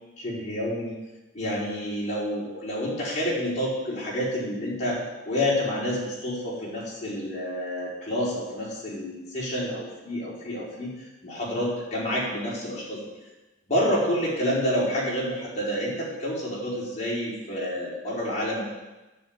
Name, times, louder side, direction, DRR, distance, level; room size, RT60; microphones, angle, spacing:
voice 1, 0.2-0.9 1.3-13.0 13.7-18.6, equal, 40° left, -7 dB, 4.8 m, -29 dB
10.5 x 7.0 x 9.0 m, 1.1 s
head